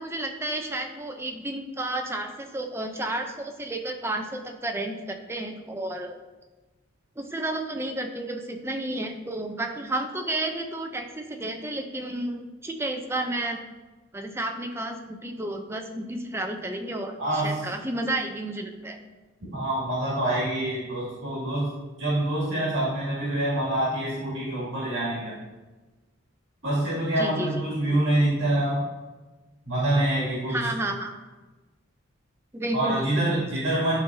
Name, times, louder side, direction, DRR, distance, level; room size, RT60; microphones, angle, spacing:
voice 1, 0.0-6.2 7.2-13.6 14.1-19.0 27.2-27.6 30.5-31.1 32.5-33.4, right 1 dB, 10° right, 4 dB, 0.5 m, -31 dB
voice 2, 17.2-17.6 19.5-21.7 22.0-25.3 26.6-28.8 29.7-30.6 32.7-33.9, right 1 dB, 65° right, -8 dB, 2.2 m, -26 dB
11.5 x 3.9 x 2.7 m, 1.2 s
head